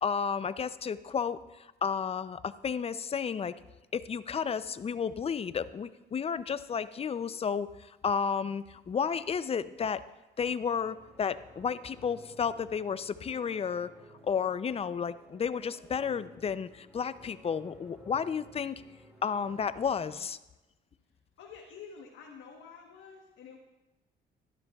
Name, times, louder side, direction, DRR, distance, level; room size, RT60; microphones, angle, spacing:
voice 1, 0.0-1.4 1.8-3.6 3.9-7.7 8.0-10.0 10.4-13.9 14.2-18.8 19.2-20.4, left 6 dB, 30° left, 14 dB, 0.4 m, -32 dB
sound 1, 10.7-19.6, equal, 10° right, 2.1 m, -56 dB
voice 2, 21.4-23.6, left 6 dB, 80° left, -1 dB, 1.2 m, -49 dB
12.5 x 11.5 x 2.3 m, 1.0 s
cardioid pair, 90°, 20 cm